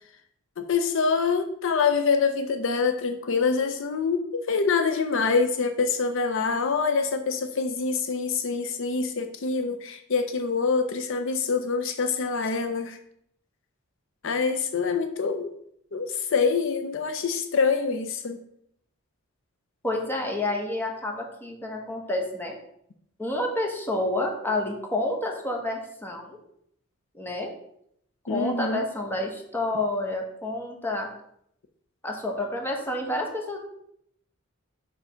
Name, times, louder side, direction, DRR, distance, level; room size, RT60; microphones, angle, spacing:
voice 1, 0.6-13.0 14.2-15.5 15.9-18.4 28.3-28.8, left 5 dB, 65° left, 7 dB, 0.6 m, -25 dB
voice 2, 19.8-22.5 23.2-26.4 27.1-27.5 28.3-31.1 32.0-33.6, left 1 dB, 10° left, 1 dB, 1.2 m, -29 dB
5.6 x 4.9 x 5.0 m, 0.72 s
head